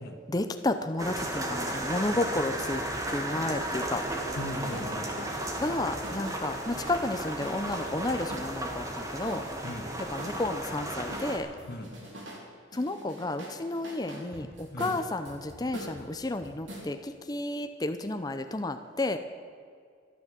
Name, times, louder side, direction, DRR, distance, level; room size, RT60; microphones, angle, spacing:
voice 1, 0.3-2.8 3.1-4.0 5.6-9.4 10.1-11.5 12.7-19.2, left 2 dB, 20° left, 8 dB, 0.6 m, -32 dB
sound 1, 1.0-11.4, right 1 dB, 20° right, 1.8 m, -34 dB
voice 2, 4.3-5.3 9.6-9.9 11.7-11.9 14.7-15.0, left 1 dB, 55° left, 5 dB, 1.6 m, -38 dB
sound 2, 4.7-4.9 5.3-8.7 9.3-10.8 11.1-12.4 12.7-16.9, equal, 75° right, 3.7 m, -45 dB
13.5 x 12.0 x 7.5 m, 2.1 s
head